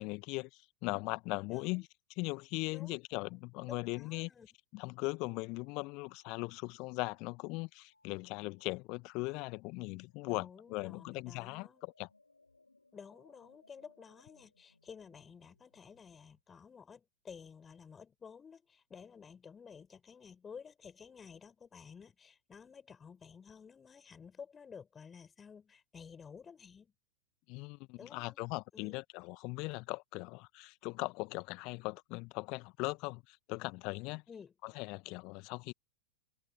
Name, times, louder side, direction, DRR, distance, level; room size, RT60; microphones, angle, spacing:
voice 1, 0.0-1.9 2.2-4.3 4.7-11.7 12.0-12.1 27.5-34.2 34.6-35.7, left 26 dB, 40° left, 1.2 m, -39 dB
voice 2, 1.5-1.9 2.7-2.9 3.3-4.5 10.2-11.8 12.9-26.9 28.0-28.4 28.7-29.0 34.3-34.5, left 6 dB, 20° left, 6.5 m, -53 dB
sound 1, 6.0-7.7 7.9-8.2 8.6-9.1 9.5-16.4, left 2 dB, 80° left, 5.6 m, -70 dB
figure-of-eight pair, 90°, 0 cm